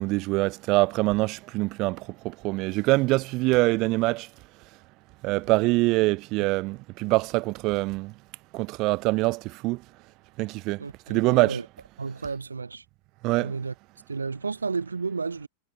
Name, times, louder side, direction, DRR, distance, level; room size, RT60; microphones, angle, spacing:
voice 1, 0.0-4.3 5.2-8.1 8.5-9.8 10.4-10.8 11.1-11.6 13.2-13.5, right 22 dB, 40° right, 3.2 m, -24 dB
voice 2, 10.8-11.6 12.0-12.8 13.4-13.7 14.1-15.5, right 4 dB, 75° right, 5.4 m, -32 dB
figure-of-eight pair, 90°, 0 cm